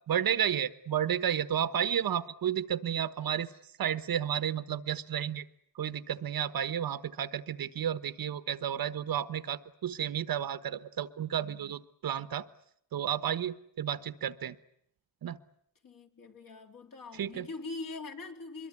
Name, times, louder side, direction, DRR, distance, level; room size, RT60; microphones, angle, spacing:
voice 1, 0.1-3.5 3.8-5.4 5.7-12.4 12.9-14.5 15.2-15.4 17.1-17.5, right 9 dB, 50° right, 1.2 m, -32 dB
voice 2, 15.8-18.7, left 3 dB, 45° left, 3.5 m, -42 dB
24.5 x 22.5 x 9.7 m
cardioid pair, 120°, 46 cm